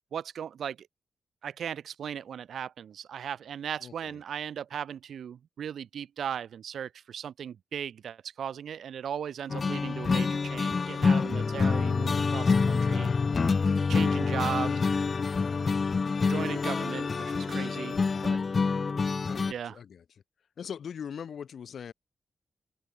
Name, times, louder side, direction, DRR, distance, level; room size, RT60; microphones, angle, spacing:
voice 1, 0.1-0.9 1.4-13.1 13.9-14.8 16.3-18.4 19.5-19.8, right 8 dB, 90° right, 1.4 m, -37 dB
voice 2, 3.8-4.1 14.6-14.8 16.7-17.1 19.3-20.0 20.6-21.9, left 7 dB, 75° left, 2.0 m, -41 dB
sound 1, 9.5-18.3, left 6 dB, 60° left, 1.1 m, -43 dB
sound 2, 9.5-19.5, left 4 dB, 40° left, 1.5 m, -27 dB
open air
wide cardioid pair, 110°, 0 cm